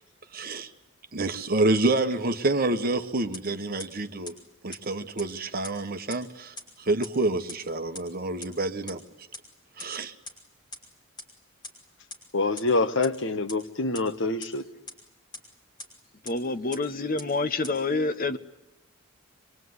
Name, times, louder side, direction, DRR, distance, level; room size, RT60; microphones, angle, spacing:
voice 1, 0.3-0.7 1.1-4.3 4.6-9.0 9.8-10.1, right 2 dB, 45° right, 1.3 m, -28 dB
sound 1, 3.3-3.4 3.8-3.9 4.3-4.4 4.7-4.8 5.2-5.3 5.6-5.7 6.1-6.2 6.6-6.7 7.0-7.1 7.5-7.6 7.9-8.0 8.4-8.5 8.9-9.0 9.3-9.4 9.8-9.9 10.3-10.4 10.7-10.8 11.2-11.3 11.6-11.7 12.1-12.2 12.6-12.7 13.0-13.1 13.5-13.6 13.9-14.0 14.4-14.5 14.9-15.0 15.3-15.4 15.8-15.9 16.3-16.4 16.7-16.8 17.2-17.3 17.6-17.7, left 2 dB, 20° left, 5.7 m, -38 dB
voice 2, 12.3-14.6, left 3 dB, 60° left, 1.4 m, -26 dB
voice 3, 16.2-18.4, left 3 dB, 40° left, 1.0 m, -27 dB
25.0 x 24.0 x 9.7 m
head